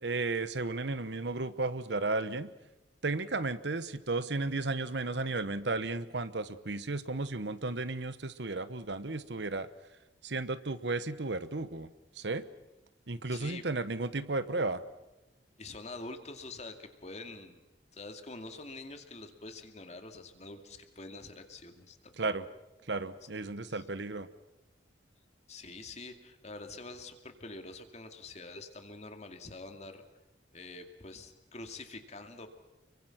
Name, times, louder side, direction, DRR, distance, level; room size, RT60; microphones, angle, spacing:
voice 1, 0.0-2.5 3.0-9.7 10.2-11.9 12.2-12.4 13.1-14.8 22.2-22.5 22.9-24.3, right 3 dB, 75° right, 13 dB, 1.1 m, -34 dB
voice 2, 13.3-13.6 15.6-17.6 17.9-22.3 23.6-23.8 25.5-30.0 30.5-32.5, left 3 dB, 40° left, 6 dB, 2.4 m, -46 dB
30.0 x 23.0 x 5.9 m, 0.98 s
head